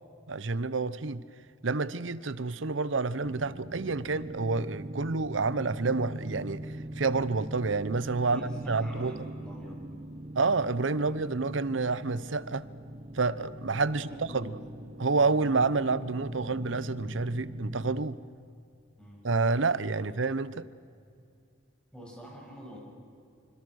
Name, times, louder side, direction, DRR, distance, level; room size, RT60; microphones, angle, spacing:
voice 1, 0.3-1.2 1.6-9.3 10.3-12.7 13.1-14.5 15.0-18.2 19.2-20.7, right 3 dB, 70° right, 0.8 m, -29 dB
sound 1, 3.2-18.0, right 1 dB, 35° right, 1.2 m, -42 dB
voice 2, 8.3-9.9 11.0-11.2 13.9-14.6 19.0-19.2 20.0-20.1 21.9-22.8, equal, 5° left, 7.3 m, -46 dB
26.5 x 26.0 x 6.4 m
head